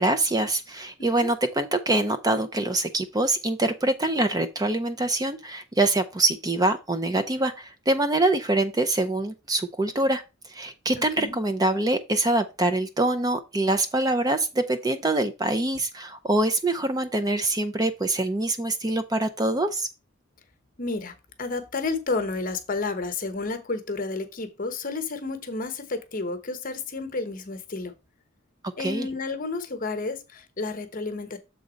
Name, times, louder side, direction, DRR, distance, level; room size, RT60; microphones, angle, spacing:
voice 1, 0.0-10.2 10.5-19.9 28.6-29.1, right 2 dB, 20° right, 0.5 m, -24 dB
voice 2, 10.9-11.3 20.8-27.9 28.8-31.4, left 3 dB, 40° left, 1.0 m, -31 dB
7.0 x 3.8 x 5.1 m
head